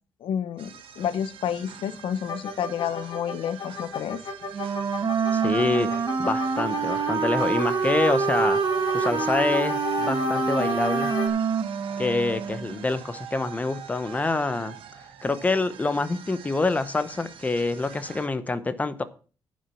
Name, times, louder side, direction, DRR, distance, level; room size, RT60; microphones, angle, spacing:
voice 1, 0.2-4.2, left 9 dB, 85° left, 15 dB, 0.8 m, -30 dB
sound 1, 0.6-18.3, right 8 dB, 85° right, 1.4 m, -45 dB
sound 2, 2.3-11.3, left 4 dB, 50° left, 2.5 m, -33 dB
Wind instrument woodwind instrument, 4.5-12.8, right 6 dB, 45° right, 1.1 m, -26 dB
voice 2, 5.3-8.6 8.9-11.1 12.0-14.8 15.2-19.0, left 3 dB, 15° left, 12 dB, 0.9 m, -26 dB
10.5 x 6.3 x 7.1 m, 0.37 s
wide cardioid pair, 150°, 9 cm